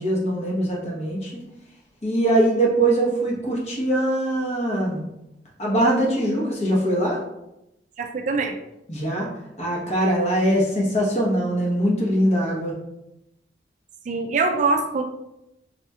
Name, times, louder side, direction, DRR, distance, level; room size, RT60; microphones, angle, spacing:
voice 1, 0.0-1.4 2.0-5.0 5.6-7.2 8.9-9.3 9.6-12.7, right 1 dB, 40° left, -3 dB, 1.0 m, -22 dB
voice 2, 8.0-8.6 14.1-15.0, right 4 dB, 45° right, 4 dB, 0.3 m, -23 dB
4.0 x 2.9 x 2.3 m, 0.88 s
head